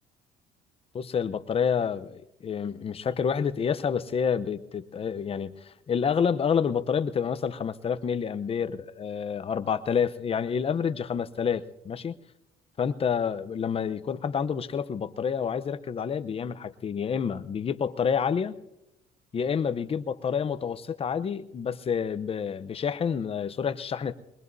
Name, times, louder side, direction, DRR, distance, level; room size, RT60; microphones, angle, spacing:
voice 1, 0.9-12.2 12.8-18.6 19.3-24.1, left 7 dB, 35° left, 12 dB, 0.8 m, -28 dB
22.5 x 21.0 x 2.7 m, 0.90 s
cardioid pair, 110°, 17 cm